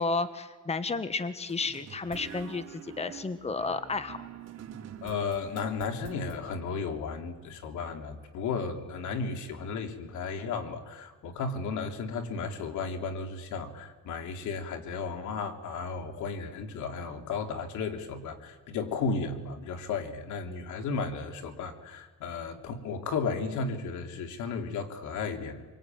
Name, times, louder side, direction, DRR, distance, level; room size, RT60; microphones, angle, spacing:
voice 1, 0.0-4.3, left 3 dB, 20° left, 11 dB, 1.4 m, -32 dB
sound 1, 1.5-6.4, right 8 dB, 60° right, 3.2 m, -46 dB
voice 2, 5.0-25.6, left 4 dB, 85° left, 4 dB, 3.4 m, -34 dB
26.5 x 24.0 x 9.3 m, 1.4 s
cardioid pair, 110°, 29 cm